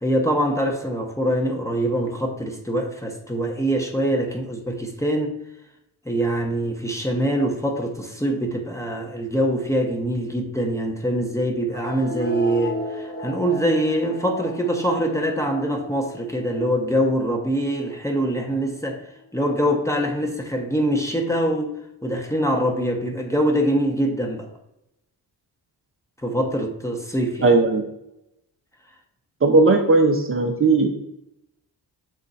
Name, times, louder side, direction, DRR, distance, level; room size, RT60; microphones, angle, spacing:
voice 1, 0.0-5.3 6.0-19.0 19.3-21.7 22.0-24.5 26.2-27.5, right 1 dB, 5° left, 2 dB, 0.9 m, -24 dB
sound 1, 11.7-18.7, left 2 dB, 25° left, 1.3 m, -35 dB
voice 2, 27.4-27.8 29.4-30.9, right 3 dB, 30° right, 2 dB, 0.7 m, -17 dB
6.5 x 3.6 x 4.1 m, 0.84 s
cardioid pair, 100°, 41 cm